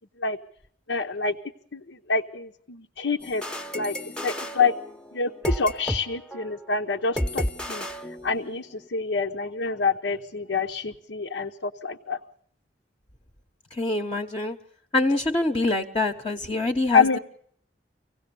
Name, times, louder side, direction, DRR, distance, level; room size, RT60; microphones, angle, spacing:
voice 1, 0.9-1.4 1.7-3.4 3.7-3.9 4.2-4.7 5.1-7.9 8.2-12.2 16.9-17.2, left 4 dB, 80° left, 2 dB, 0.9 m, -26 dB
sound 1, 3.2-6.1 6.3-6.6 7.2-8.7, equal, 5° left, 0.8 m, -32 dB
voice 2, 13.7-14.6 14.9-17.1, left 2 dB, 30° left, 3 dB, 0.9 m, -25 dB
25.5 x 17.0 x 6.9 m, 0.64 s
head